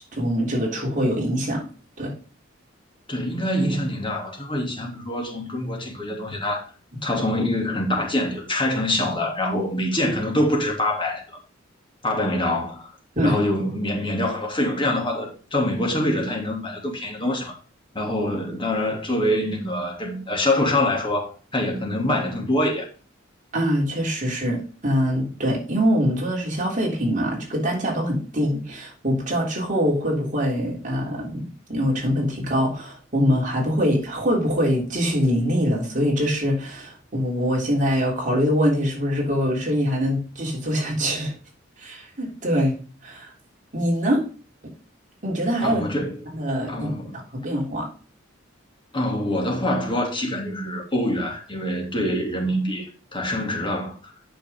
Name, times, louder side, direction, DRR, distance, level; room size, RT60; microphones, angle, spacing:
voice 1, 0.2-1.6 2.0-2.1 13.1-13.4 23.5-41.3 41.8-43.3 43.7-44.2 45.2-45.8 46.3-46.9 47.3-47.9, equal, 40° right, 3.4 m, -23 dB
voice 2, 3.1-6.6 7.0-11.4 12.0-12.9 13.2-17.5 17.9-22.9 45.6-46.2 46.7-47.2 48.9-54.0, left 1 dB, 25° left, 2.7 m, -25 dB
9.0 x 6.2 x 3.7 m
head